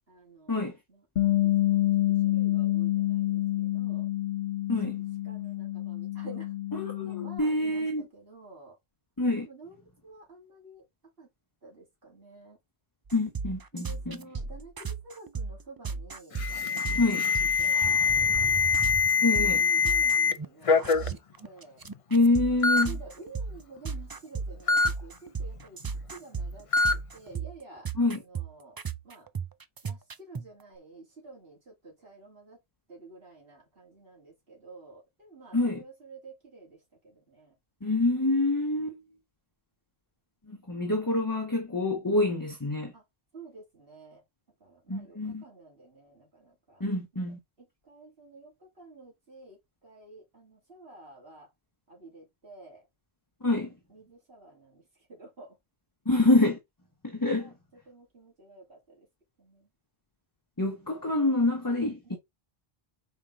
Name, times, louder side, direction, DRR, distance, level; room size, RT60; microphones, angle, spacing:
voice 1, 0.1-4.1 5.2-6.5 7.0-8.7 9.4-10.8 11.2-11.3 11.6-12.6 13.7-18.7 19.2-21.8 22.9-25.8 26.1-28.8 29.0-29.3 29.8-32.6 32.9-37.5 42.9-43.0 43.3-44.2 44.6-46.8 47.1-51.5 51.9-52.8 53.5-54.8 55.1-55.6 57.4-57.5 57.9-59.1 59.4-59.7 62.0-62.2, right 3 dB, 65° right, 3.4 m, -51 dB
Bass guitar, 1.2-7.4, left 15 dB, 80° left, 1.2 m, -28 dB
voice 2, 6.7-8.1 9.2-9.5 13.1-14.2 17.0-17.2 19.2-19.7 22.1-23.0 28.0-28.2 35.5-35.8 37.8-39.0 40.5-42.9 44.9-45.4 46.8-47.4 53.4-53.7 56.1-56.6 57.0-57.5 60.6-62.2, left 2 dB, 20° left, 1.1 m, -26 dB
sound 1, 13.1-20.4 20.8-30.5, right 5 dB, 35° right, 0.4 m, -36 dB
Alarm, 16.4-20.3 20.7-21.1 21.9-22.0 22.6-22.8 24.7-24.9 26.7-26.9, left 5 dB, 40° left, 0.5 m, -24 dB
5.7 x 4.9 x 3.6 m
omnidirectional pair, 1.0 m